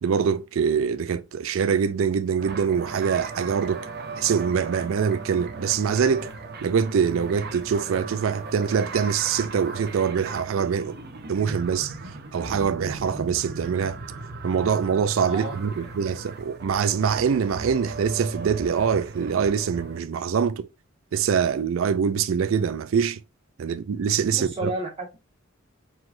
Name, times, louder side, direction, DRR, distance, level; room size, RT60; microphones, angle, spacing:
voice 1, 0.0-3.9 4.2-6.3 6.6-11.0 11.3-11.9 12.3-14.0 14.4-20.7 21.1-23.2 23.6-24.7, right 6 dB, 85° right, 0.4 m, -24 dB
sound 1, 2.4-20.0, right 3 dB, 55° right, 0.9 m, -37 dB
voice 2, 15.3-16.0 24.4-25.2, right 2 dB, 30° right, 1.0 m, -32 dB
4.8 x 3.9 x 2.5 m
head